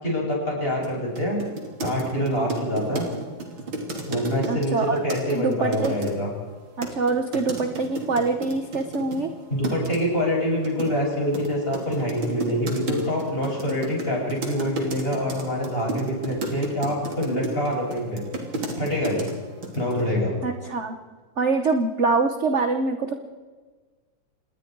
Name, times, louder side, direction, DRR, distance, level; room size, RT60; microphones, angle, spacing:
voice 1, 0.0-1.4 1.8-3.1 4.1-6.3 9.5-18.2 18.8-19.3 19.7-20.3, equal, 30° left, -3 dB, 7.5 m, -25 dB
sound 1, 0.8-0.9 1.2-6.1 6.8-9.2 9.6-10.0 10.6-19.3 19.6-20.1, right 2 dB, 85° right, 3.8 m, -32 dB
voice 2, 4.4-5.0 5.3-6.1 6.8-9.3 20.4-21.0 21.4-23.1, right 3 dB, 45° right, 7 dB, 1.2 m, -24 dB
27.0 x 20.5 x 4.7 m, 1.4 s
omnidirectional pair, 2.1 m